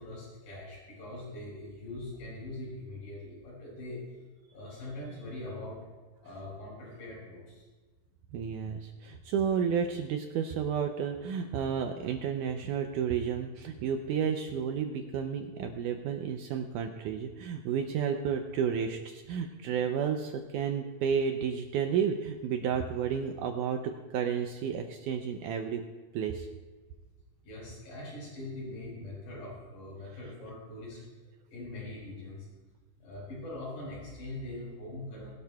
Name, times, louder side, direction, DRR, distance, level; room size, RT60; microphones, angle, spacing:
voice 1, 0.0-4.0 4.5-5.8 6.2-7.6 27.4-31.0 31.5-32.4 33.0-35.3, left 2 dB, 90° left, -7 dB, 6.5 m, -42 dB
voice 2, 8.3-25.8 26.1-26.5, right 7 dB, 80° right, 5 dB, 1.8 m, -31 dB
21.0 x 12.0 x 2.3 m, 1.3 s
omnidirectional pair, 4.3 m